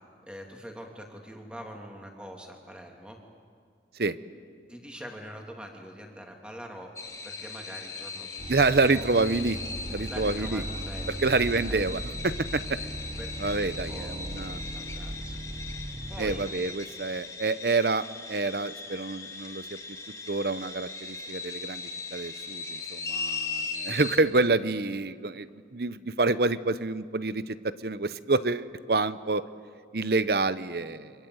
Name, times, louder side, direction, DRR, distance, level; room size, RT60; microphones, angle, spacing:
voice 1, 0.3-3.2 4.7-6.9 7.2-8.4 8.9-9.1 10.1-11.2 11.7-11.8 12.8-12.9 13.2-13.5 13.9-15.4 16.1-16.5 22.4-22.5, equal, 5° right, 2 dB, 2.9 m, -44 dB
sound 1, 7.0-24.2, left 4 dB, 20° left, 2.0 m, -39 dB
sound 2, 8.4-16.5, right 1 dB, 25° right, 0.9 m, -38 dB
voice 2, 8.5-9.6 9.9-10.6 11.2-12.8 13.4-14.6 16.2-19.7 20.3-21.8 22.1-25.5 25.7-29.4 29.9-31.1, right 3 dB, 60° right, 14 dB, 0.9 m, -27 dB
28.5 x 25.5 x 8.1 m, 2.1 s
head